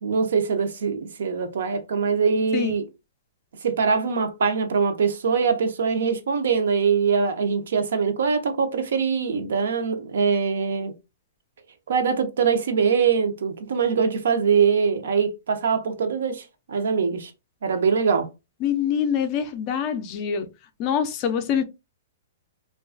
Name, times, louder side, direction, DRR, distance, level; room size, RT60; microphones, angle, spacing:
voice 1, 0.0-2.8 3.6-10.9 11.9-17.3 17.6-18.3, right 6 dB, 75° right, 0.5 m, -23 dB
voice 2, 18.6-20.5 20.8-21.6, left 8 dB, 25° left, 0.3 m, -25 dB
2.3 x 2.2 x 2.4 m
hypercardioid pair, 165°, 0 cm